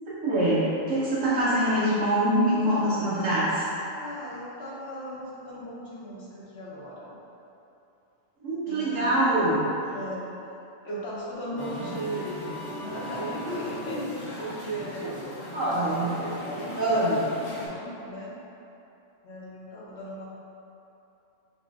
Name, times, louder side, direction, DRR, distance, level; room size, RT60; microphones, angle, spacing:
voice 1, 0.2-3.7 8.4-9.6 15.0-15.1 15.5-16.1 16.8-17.3, right 1 dB, 80° right, -11 dB, 1.3 m, -24 dB
voice 2, 3.9-7.2 8.6-9.1 9.9-10.2 10.8-15.3 15.8-16.9 17.4-18.4 19.2-20.2, right 1 dB, 60° left, -6 dB, 1.1 m, -37 dB
Musical instrument, 11.6-17.7, left 1 dB, 40° left, 0.9 m, -38 dB
5.0 x 2.3 x 3.5 m, 2.8 s
omnidirectional pair, 1.3 m